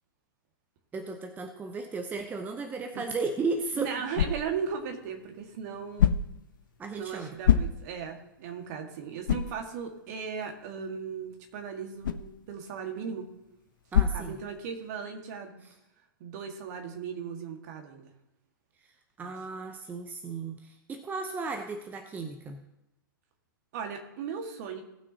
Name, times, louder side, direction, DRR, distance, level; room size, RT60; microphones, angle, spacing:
voice 1, 0.9-3.9 6.8-7.4 13.9-14.4 15.6-15.7 19.2-22.6, right 4 dB, 15° right, 6 dB, 0.8 m, -35 dB
sound 1, 3.3-15.0, left 8 dB, 60° left, 0.7 m, -32 dB
voice 2, 3.8-6.2 7.0-13.3 14.1-15.6 16.2-18.1 19.2-19.3 23.7-24.8, right 6 dB, 50° right, 4 dB, 1.8 m, -37 dB
18.5 x 6.2 x 2.9 m, 0.92 s
figure-of-eight pair, 110°, 12 cm